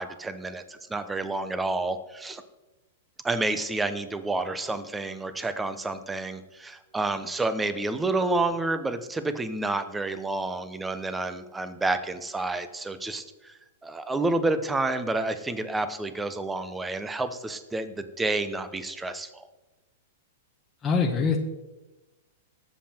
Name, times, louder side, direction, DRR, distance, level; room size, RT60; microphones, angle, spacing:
voice 1, 0.0-2.4 3.2-19.5, right 2 dB, 10° right, 11 dB, 0.8 m, -29 dB
voice 2, 20.8-21.4, left 5 dB, 15° left, 0 dB, 1.1 m, -23 dB
18.0 x 7.6 x 4.4 m, 1.1 s
hypercardioid pair, 145°, 0 cm